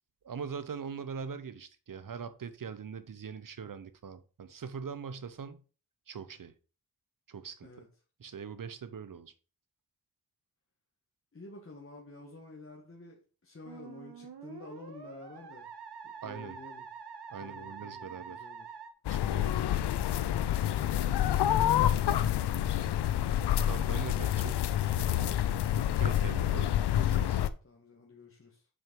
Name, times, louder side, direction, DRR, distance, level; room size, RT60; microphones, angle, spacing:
voice 1, 0.2-5.6 6.1-6.5 7.3-7.9 8.2-9.3 16.2-16.6 17.3-18.4 19.1-19.6 23.6-24.7 24.9-25.6 25.8-27.5, right 6 dB, 55° right, 0.9 m, -42 dB
voice 2, 11.3-15.7 16.0-16.9 17.4-18.7 27.6-28.7, left 3 dB, 35° left, 1.6 m, -50 dB
Musical instrument, 13.7-18.9, right 6 dB, 80° right, 1.2 m, -46 dB
sound 1, 19.0-27.5, left 11 dB, 90° left, 0.5 m, -28 dB
6.2 x 4.5 x 5.3 m
cardioid pair, 60°, 39 cm